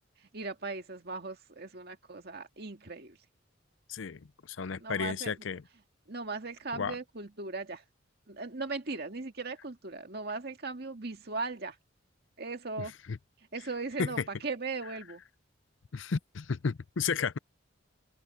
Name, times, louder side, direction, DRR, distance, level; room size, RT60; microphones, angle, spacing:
voice 1, 0.3-3.2 4.8-5.4 6.1-7.8 8.3-11.8 12.4-12.9 13.5-15.2, right 3 dB, 55° right, 2.1 m, -38 dB
voice 2, 3.9-5.6 6.7-7.0 13.1-13.2 14.0-14.1 15.9-17.4, left 5 dB, 70° left, 0.6 m, -33 dB
open air
head